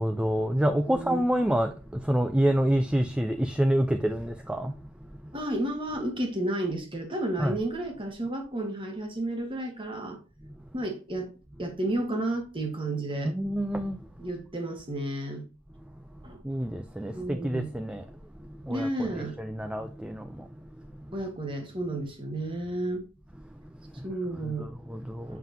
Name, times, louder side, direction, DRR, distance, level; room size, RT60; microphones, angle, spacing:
voice 1, 0.0-5.4 7.4-7.6 10.4-10.8 11.6-11.7 13.2-14.3 16.1-21.2 23.3-25.4, right 1 dB, 5° right, 0.3 m, -29 dB
voice 2, 0.9-1.2 5.3-10.2 10.7-11.3 11.6-13.3 14.2-15.4 16.2-16.4 17.1-17.7 18.7-19.4 21.1-23.0 24.0-24.7 25.3-25.4, right 1 dB, 25° right, 1.3 m, -32 dB
7.3 x 5.7 x 2.6 m
head